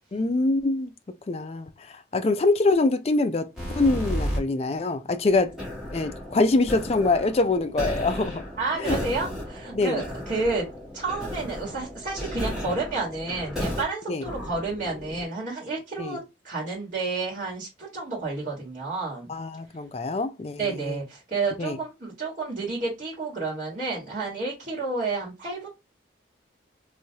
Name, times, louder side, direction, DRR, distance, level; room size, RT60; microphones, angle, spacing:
voice 1, 0.1-0.9 1.3-1.7 2.1-3.5 3.8-5.5 5.9-8.4 8.8-9.0 9.7-10.0 14.1-14.2 16.0-16.2 19.3-21.0 21.6-21.8, left 3 dB, 35° left, 0.4 m, -24 dB
sound 1, 3.6-4.4 5.2-13.8 14.2-15.2, equal, ahead, 1.6 m, -34 dB
voice 2, 8.6-10.7 10.9-19.3 20.6-25.7, right 3 dB, 40° right, 1.5 m, -30 dB
3.3 x 2.7 x 2.8 m
head